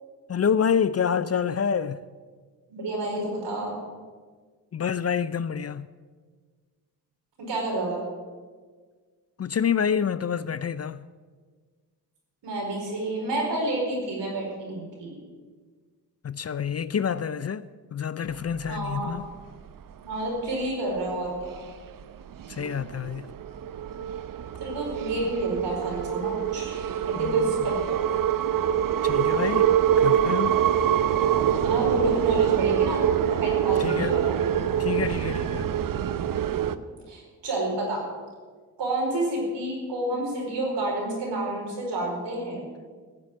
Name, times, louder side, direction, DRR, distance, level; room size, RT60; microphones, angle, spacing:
voice 1, 0.3-2.0 4.7-5.9 9.4-11.1 16.2-17.6 17.9-19.3 22.5-23.3 27.2-27.4 29.0-29.7 30.0-30.6 33.8-34.2 34.8-35.8, left 7 dB, 35° left, 0.5 m, -27 dB
voice 2, 2.7-3.7 7.4-8.1 12.4-15.2 18.7-19.1 20.0-21.6 24.6-26.7 27.1-28.0 31.6-34.8 36.6-36.8 37.1-38.0 38.8-42.6, right 1 dB, 75° right, 5.0 m, -30 dB
sound 1, 18.6-19.3 19.7-19.8 20.2-20.7 21.3-21.6 22.0-36.8, right 9 dB, 50° right, 0.7 m, -25 dB
15.0 x 7.5 x 8.6 m
supercardioid pair, 40°, 43 cm